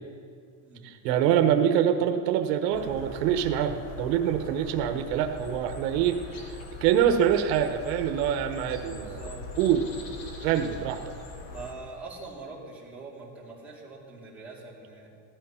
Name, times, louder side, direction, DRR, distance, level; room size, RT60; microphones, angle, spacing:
voice 1, 0.8-6.2 6.8-9.2 9.6-9.8 10.4-11.0, right 9 dB, 85° right, 7 dB, 1.2 m, -25 dB
sound 1, 2.7-11.7, left 3 dB, 45° left, 1.9 m, -42 dB
voice 2, 8.9-9.5 9.8-10.0 10.4-10.7 11.5-15.1, right 3 dB, 5° right, -7 dB, 2.6 m, -43 dB
16.0 x 12.5 x 5.7 m, 2.3 s
cardioid pair, 175°, 49 cm